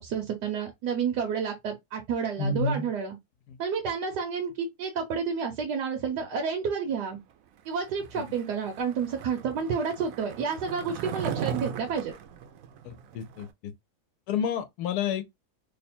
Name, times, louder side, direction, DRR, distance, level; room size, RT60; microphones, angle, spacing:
voice 1, 0.0-3.2 3.6-7.2 7.6-12.1, right 6 dB, 85° right, 1.4 m, -30 dB
voice 2, 2.4-2.9 8.2-8.3 12.8-13.7 14.3-15.2, left 5 dB, 75° left, 1.1 m, -30 dB
Skateboard, 8.0-13.5, right 8 dB, 65° right, 0.9 m, -38 dB
3.3 x 2.1 x 4.2 m
omnidirectional pair, 1.8 m